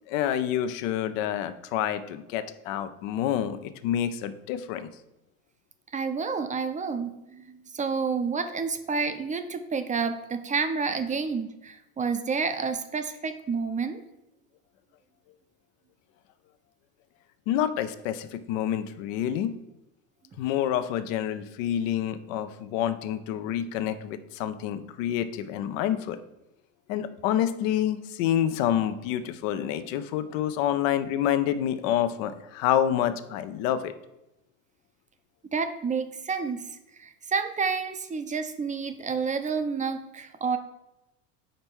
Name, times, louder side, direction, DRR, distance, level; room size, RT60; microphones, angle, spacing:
voice 1, 0.1-4.9 17.5-19.6 20.4-26.2 26.9-33.9, left 10 dB, 65° left, 12 dB, 0.7 m, -28 dB
voice 2, 5.9-14.0 35.5-40.6, right 5 dB, 20° right, 9 dB, 0.6 m, -29 dB
5.3 x 4.4 x 6.1 m, 0.93 s
hypercardioid pair, 90°, 42 cm